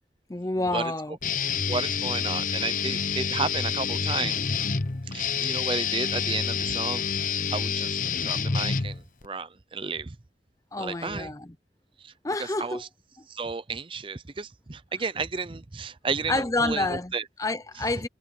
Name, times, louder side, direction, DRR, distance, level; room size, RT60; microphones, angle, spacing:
voice 1, 0.3-1.2 10.7-11.5 12.2-12.8 16.3-17.1 17.4-18.1, left 2 dB, 20° left, 0.7 m, -28 dB
Guitar, 1.2-9.3, left 6 dB, 45° left, 0.9 m, -28 dB
voice 2, 1.7-4.5 5.1-10.2 10.8-11.3 12.0-12.1 12.4-12.9 13.3-17.2 17.8-17.9, right 4 dB, 30° right, 0.6 m, -33 dB
head